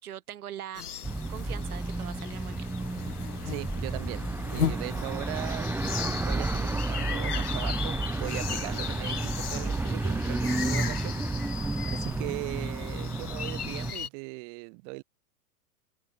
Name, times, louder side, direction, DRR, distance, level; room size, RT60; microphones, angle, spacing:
voice 1, 0.0-0.8 1.3-2.7, right 11 dB, 75° right, 1.9 m, -41 dB
sound 1, 0.8-14.1, left 8 dB, 90° left, 1.4 m, -37 dB
sound 2, 1.0-13.9, right 2 dB, 5° right, 1.0 m, -31 dB
voice 2, 3.5-5.7 6.1-15.0, right 40 dB or more, 45° right, 2.2 m, -39 dB
hypercardioid pair, 105°, 44 cm